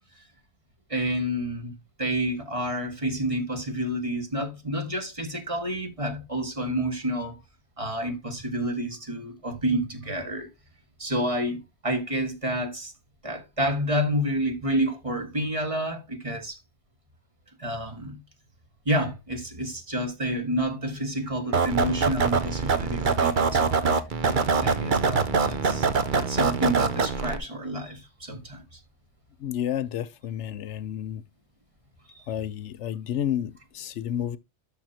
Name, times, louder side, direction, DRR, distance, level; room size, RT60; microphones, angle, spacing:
voice 1, 0.9-1.7 2.0-7.4 7.8-10.5 11.0-12.9 13.2-16.6 17.6-18.2 18.8-24.0 24.6-25.9 26.1-28.8 32.1-32.2, right 1 dB, 30° right, 1.7 m, -29 dB
sound 1, 21.5-27.4, right 5 dB, 45° right, 0.9 m, -24 dB
voice 2, 29.4-31.2 32.3-34.4, left 10 dB, 90° left, 1.0 m, -30 dB
12.0 x 5.5 x 2.8 m
omnidirectional pair, 1.2 m